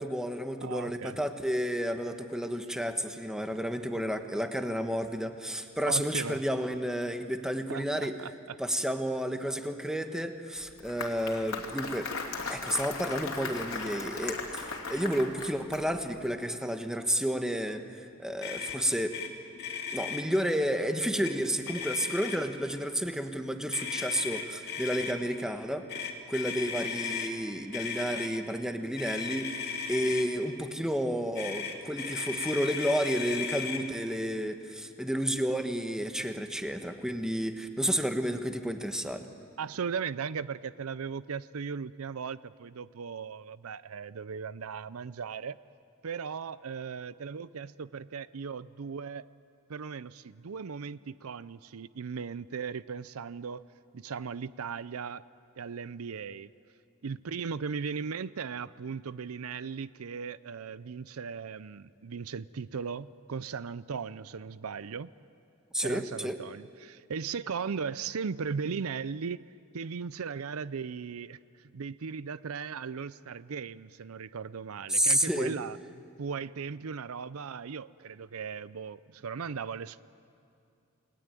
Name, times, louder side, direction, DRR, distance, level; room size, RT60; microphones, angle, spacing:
voice 1, 0.0-8.2 8.6-12.1 12.5-19.2 19.9-25.9 26.3-39.3 65.7-66.4 74.9-75.5, equal, 5° right, 6 dB, 1.3 m, -31 dB
voice 2, 0.6-1.2 5.8-6.4 7.7-8.6 39.6-45.6 46.0-49.2 49.7-53.6 53.9-55.2 55.6-56.5 57.0-65.1 65.8-69.4 69.7-75.8 76.2-80.0, right 6 dB, 85° right, 17 dB, 0.5 m, -37 dB
Applause, 10.6-16.0, left 4 dB, 80° left, 2.9 m, -37 dB
Motor vehicle (road), 18.4-18.8 19.1-19.3 19.6-20.2 21.0-21.3 21.6-22.6 23.7-25.1 25.9-27.3 27.7-28.3 29.0-30.3 31.3-33.8, left 6 dB, 50° left, 2.8 m, -36 dB
29.0 x 20.0 x 9.2 m, 2.5 s
head